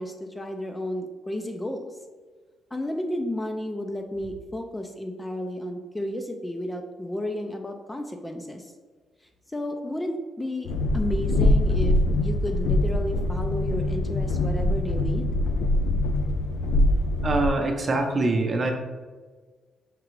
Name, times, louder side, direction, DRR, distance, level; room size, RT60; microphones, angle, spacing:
voice 1, 0.0-2.0 2.7-8.7 9.5-15.3, left 1 dB, 15° left, 4 dB, 0.4 m, -32 dB
Train, 10.7-17.5, left 1 dB, 85° left, 0.3 m, -23 dB
voice 2, 17.2-18.7, right 2 dB, 35° right, 3 dB, 0.7 m, -24 dB
5.9 x 2.4 x 3.1 m, 1.4 s
cardioid pair, 90°, 0 cm